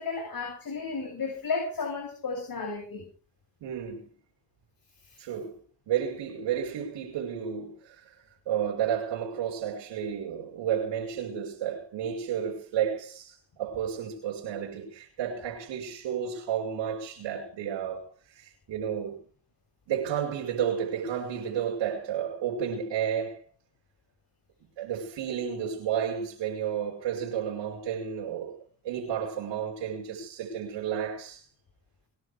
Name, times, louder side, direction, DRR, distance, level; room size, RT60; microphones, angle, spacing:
voice 1, 0.0-3.1, left 4 dB, 50° left, 7.4 m, -33 dB
voice 2, 3.6-4.1 5.2-5.6 5.9-19.2 19.9-23.4 24.8-28.6 28.8-31.5, right 8 dB, 80° right, 5.1 m, -32 dB
21.5 x 11.5 x 5.0 m
supercardioid pair, 65°, 43 cm